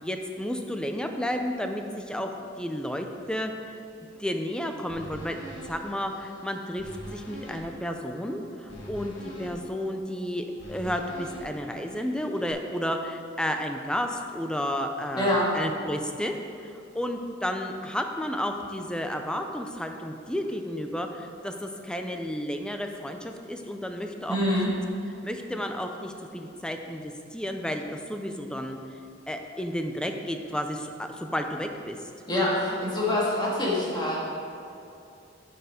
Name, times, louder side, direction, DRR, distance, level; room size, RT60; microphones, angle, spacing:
voice 1, 0.0-3.5 4.1-24.5 25.2-28.8 29.3-32.0, equal, 5° left, 5 dB, 0.6 m, -32 dB
sound 1, 4.9-12.5, equal, 70° left, 2.0 m, -44 dB
voice 2, 15.2-15.5 24.3-24.7 32.3-34.2, left 1 dB, 25° left, -6 dB, 2.3 m, -25 dB
9.0 x 6.9 x 5.1 m, 2.7 s
head